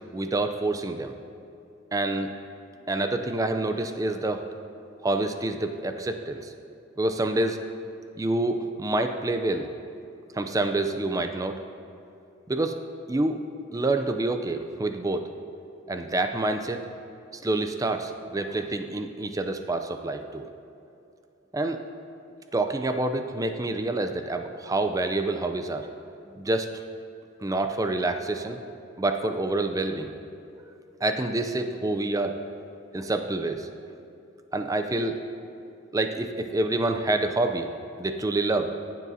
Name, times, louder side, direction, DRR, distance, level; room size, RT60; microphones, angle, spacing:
voice 1, 0.1-1.1 1.9-2.3 2.9-4.5 5.0-6.5 7.0-7.6 8.2-9.7 10.3-11.6 12.5-12.8 13.1-13.4 13.7-15.3 15.9-16.9 17.3-20.5 21.5-21.8 22.5-25.9 26.3-26.7 27.4-28.6 29.0-30.1 30.5-30.6 31.0-32.4 32.9-33.7 34.5-35.2 35.9-37.7 38.0-38.7, right 2 dB, 15° right, 7 dB, 0.4 m, -27 dB
15.0 x 7.4 x 2.7 m, 2.7 s
head